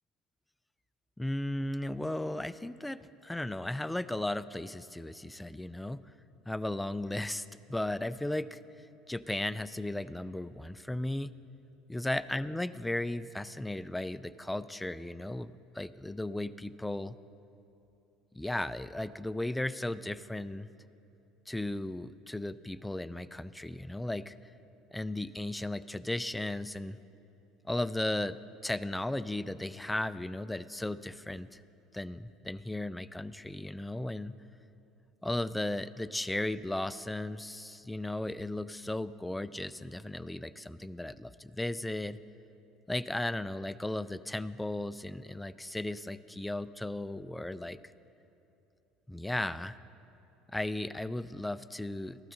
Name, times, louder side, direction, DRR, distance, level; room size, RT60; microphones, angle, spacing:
voice 1, 1.2-6.0 6.5-8.6 9.1-11.3 11.9-17.2 18.3-20.7 21.5-24.3 24.9-27.0 27.6-28.4 28.6-31.6 31.9-34.3 35.2-42.2 42.9-47.8 49.1-49.7 50.5-52.3, left 1 dB, 5° left, 15 dB, 0.4 m, -35 dB
14.5 x 12.0 x 3.9 m, 2.9 s
hypercardioid pair, 80°, 0 cm